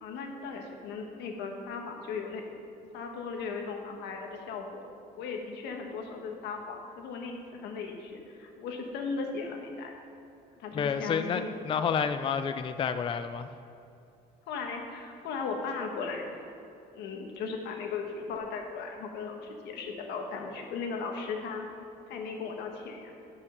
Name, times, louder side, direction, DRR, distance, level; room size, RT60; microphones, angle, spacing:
voice 1, 0.0-2.4 2.9-4.9 5.2-9.9 10.6-11.5 14.5-16.2 16.9-21.6 22.1-23.1, left 4 dB, 85° left, 3 dB, 1.4 m, -37 dB
voice 2, 10.7-13.5, left 6 dB, 30° left, 10 dB, 0.4 m, -30 dB
10.5 x 5.6 x 6.7 m, 2.6 s
cardioid pair, 110°, 17 cm